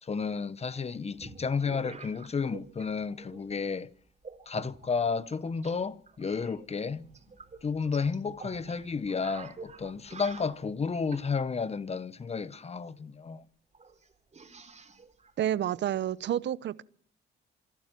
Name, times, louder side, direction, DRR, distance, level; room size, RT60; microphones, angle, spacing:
voice 1, 0.0-3.9 4.5-7.0 7.6-13.4, left 5 dB, 30° left, 1.0 m, -32 dB
sound 1, 0.7-2.9 3.2-3.7 4.2-5.7 6.0-11.3 13.0-13.1 13.3-13.4 13.7-16.3, right 4 dB, 35° right, 3.7 m, -48 dB
voice 2, 15.4-16.8, right 11 dB, 65° right, 0.8 m, -29 dB
26.0 x 12.0 x 9.1 m
cardioid pair, 90°, 20 cm